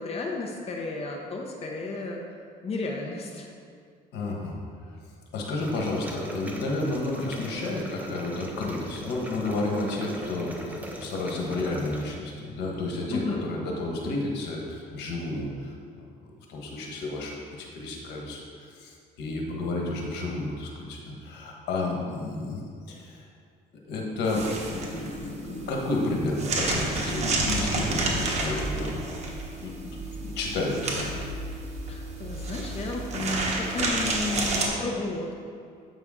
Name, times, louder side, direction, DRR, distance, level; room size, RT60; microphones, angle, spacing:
voice 1, 0.0-2.2 2.6-3.5 13.1-13.4 31.8-35.3, left 3 dB, 35° left, 0 dB, 0.8 m, -33 dB
voice 2, 4.1-4.6 5.3-15.7 16.2-22.6 22.9-23.2 23.9-29.2 29.6-31.1, left 2 dB, 80° left, -1 dB, 1.4 m, -31 dB
sound 1, 5.6-12.1, right 1 dB, 10° right, 0.9 m, -41 dB
sound 2, 24.3-34.7, right 2 dB, 40° right, 1.3 m, -30 dB
8.2 x 5.6 x 3.7 m, 2.3 s
cardioid pair, 110°, 17 cm